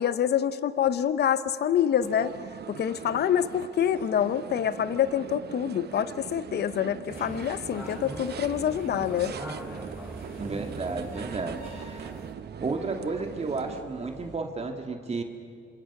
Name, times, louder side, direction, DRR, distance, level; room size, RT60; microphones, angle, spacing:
voice 1, 0.0-2.3 2.7-9.3, left 9 dB, 55° left, 14 dB, 0.8 m, -26 dB
sound 1, 1.9-2.7 6.3-14.4, right 4 dB, 70° right, 4.0 m, -52 dB
sound 2, 2.0-13.8, right 9 dB, 55° right, 0.9 m, -41 dB
sound 3, 7.1-12.3, right 1 dB, 10° right, 7.1 m, -41 dB
voice 2, 10.4-12.1 12.6-15.2, right 3 dB, 30° right, 4 dB, 2.0 m, -32 dB
27.0 x 27.0 x 6.0 m, 2.3 s
cardioid pair, 90°, 20 cm